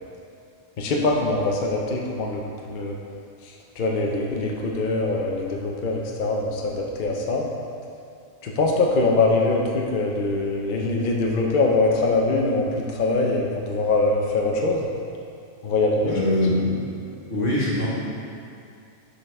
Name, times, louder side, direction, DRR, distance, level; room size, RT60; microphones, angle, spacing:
voice 1, 0.8-2.4 2.7-2.9 3.8-7.5 8.4-14.9 15.6-16.1, left 2 dB, 50° left, -1 dB, 0.7 m, -23 dB
voice 2, 16.1-16.8 17.3-17.9, left 1 dB, 75° left, -8 dB, 2.1 m, -22 dB
6.8 x 4.3 x 5.3 m, 2.5 s
omnidirectional pair, 1.3 m